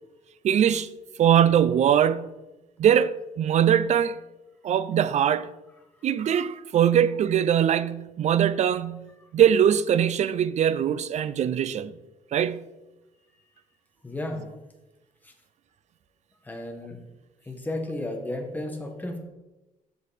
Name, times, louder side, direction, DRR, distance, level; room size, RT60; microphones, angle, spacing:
voice 1, 0.4-0.9 1.2-2.3 2.8-4.2 4.6-5.5 6.0-11.9 12.3-12.6, right 9 dB, 55° right, 0.5 m, -22 dB
voice 2, 14.0-14.4 15.2-15.3 16.4-17.0 17.4-19.2, left 1 dB, 10° left, 1.5 m, -33 dB
13.5 x 4.7 x 4.2 m
cardioid pair, 125°, 14 cm